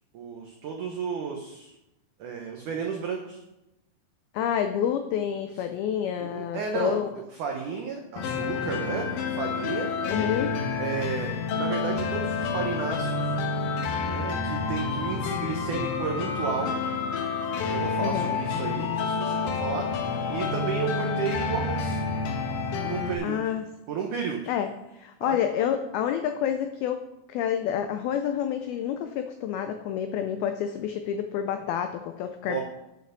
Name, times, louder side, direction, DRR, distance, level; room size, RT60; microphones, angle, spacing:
voice 1, 0.1-1.7 2.2-3.4 5.5-5.6 6.2-7.0 7.4-9.1 9.4-9.9 10.8-13.4 14.0-16.9 17.7-22.0 22.8-23.5 23.9-24.4 25.2-25.4 32.5-32.6, right 6 dB, 85° right, 2 dB, 1.7 m, -33 dB
voice 2, 4.3-7.1 10.0-10.6 18.0-18.4 20.6-20.7 23.2-23.7 24.5-24.7 24.9-32.6, left 9 dB, 90° left, 7 dB, 2.1 m, -28 dB
sound 1, 8.2-23.1, left 4 dB, 70° left, 2.3 m, -29 dB
9.3 x 6.6 x 6.6 m, 0.92 s
omnidirectional pair, 5.1 m